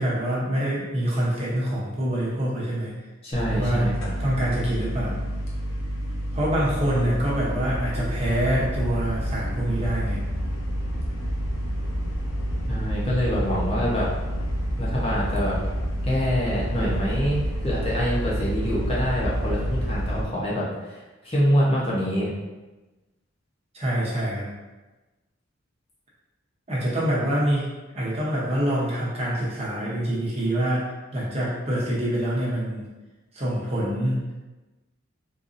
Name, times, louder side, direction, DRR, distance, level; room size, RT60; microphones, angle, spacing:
voice 1, 0.0-3.0 3.6-3.9 4.2-5.2 6.3-10.2 16.8-17.0 23.7-24.5 26.7-27.7 27.9-32.8 33.3-34.3, right 1 dB, 30° right, -6 dB, 0.8 m, -25 dB
voice 2, 3.2-4.1 12.7-14.1 14.8-15.6 16.0-21.0 21.2-22.3, equal, 30° left, -6 dB, 0.8 m, -25 dB
sound 1, 3.3-20.2, equal, 80° left, 0.8 m, -28 dB
4.0 x 2.6 x 2.5 m, 1.1 s
head